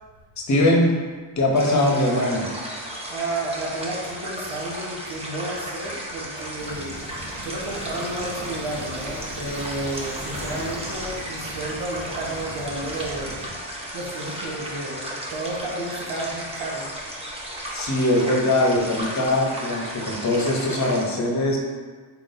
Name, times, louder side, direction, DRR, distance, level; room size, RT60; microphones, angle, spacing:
voice 1, 0.5-0.9 1.4-2.5 17.7-21.6, left 1 dB, 40° left, -1 dB, 0.9 m, -21 dB
sound 1, 1.5-21.0, equal, 15° right, 0.8 m, -35 dB
voice 2, 3.1-7.0 7.4-13.4 13.7-16.9, right 2 dB, 70° right, -2 dB, 1.1 m, -32 dB
sound 2, 6.6-13.5, equal, 45° right, 1.4 m, -38 dB
4.5 x 3.9 x 2.6 m, 1.5 s
cardioid pair, 100°, 46 cm